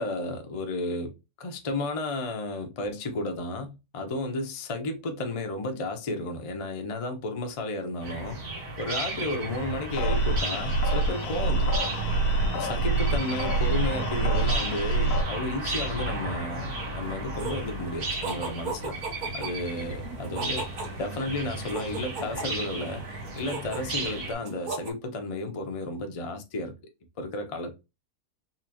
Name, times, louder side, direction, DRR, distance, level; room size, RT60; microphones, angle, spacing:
voice 1, 0.0-8.4 8.8-11.7 12.5-16.7 16.9-19.0 19.3-20.7 21.0-26.8 27.2-27.7, left 2 dB, 65° left, 0.3 m, -33 dB
sound 1, 8.0-24.3, right 2 dB, 80° right, 2.0 m, -34 dB
sound 2, 9.9-15.2, right 2 dB, 85° left, 1.1 m, -26 dB
sound 3, 17.4-24.9, right 3 dB, 60° right, 0.5 m, -39 dB
4.2 x 2.5 x 2.8 m
omnidirectional pair, 1.6 m